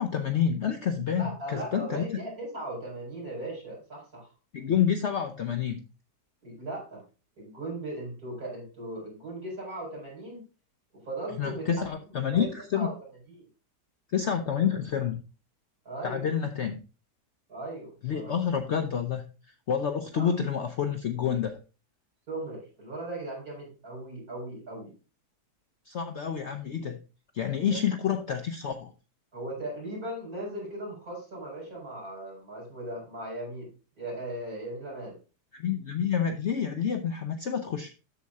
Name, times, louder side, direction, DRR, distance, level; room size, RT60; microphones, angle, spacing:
voice 1, 0.0-2.0 4.5-5.8 11.4-12.9 14.1-15.2 16.0-16.8 18.0-19.3 19.7-21.6 25.9-27.0 27.3-28.9 35.6-37.9, left 8 dB, 60° left, 7 dB, 0.7 m, -28 dB
voice 2, 1.2-4.3 6.4-7.0 7.4-10.4 11.0-11.8 12.2-12.5 12.7-13.0 13.3-13.5 15.8-16.3 17.5-18.3 20.1-20.3 22.3-24.9 27.6-27.8 29.3-33.7 34.0-35.2, right 1 dB, 60° right, -3 dB, 5.0 m, -38 dB
12.5 x 4.3 x 3.6 m, 0.32 s
omnidirectional pair, 1.8 m